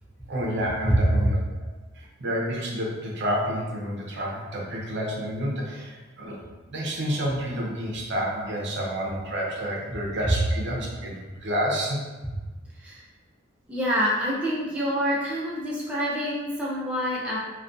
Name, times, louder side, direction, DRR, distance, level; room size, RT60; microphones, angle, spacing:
voice 1, 0.3-1.4 1.9-6.4 6.7-12.0, equal, 60° right, -3 dB, 0.5 m, -29 dB
voice 2, 13.7-17.4, equal, 5° right, -7 dB, 0.4 m, -26 dB
2.4 x 2.2 x 2.5 m, 1.2 s
head